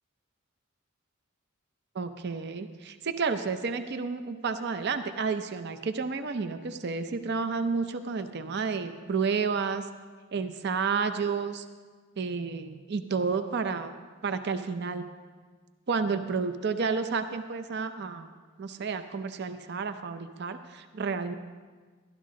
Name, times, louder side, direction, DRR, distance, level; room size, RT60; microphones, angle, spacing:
voice 1, 1.9-9.9 10.3-11.6 12.2-13.9 14.2-15.0 15.9-18.3 18.6-21.3, right 5 dB, 55° right, 9 dB, 0.5 m, -31 dB
12.0 x 12.0 x 3.7 m, 1.5 s
head